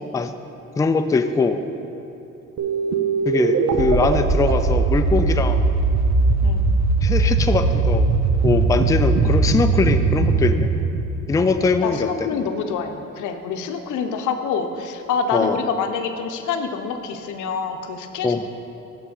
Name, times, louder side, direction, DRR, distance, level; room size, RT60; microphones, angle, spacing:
voice 1, 0.8-1.6 3.3-5.6 7.0-8.1 8.4-10.7 11.3-12.3 15.3-15.6 18.2-18.5, left 4 dB, 10° left, 8 dB, 0.3 m, -21 dB
sound 1, 2.6-11.9, right 3 dB, 65° right, 0.7 m, -20 dB
voice 2, 11.8-18.5, left 6 dB, 85° left, 7 dB, 0.7 m, -26 dB
6.8 x 5.8 x 6.3 m, 2.9 s
cardioid pair, 90°, 30 cm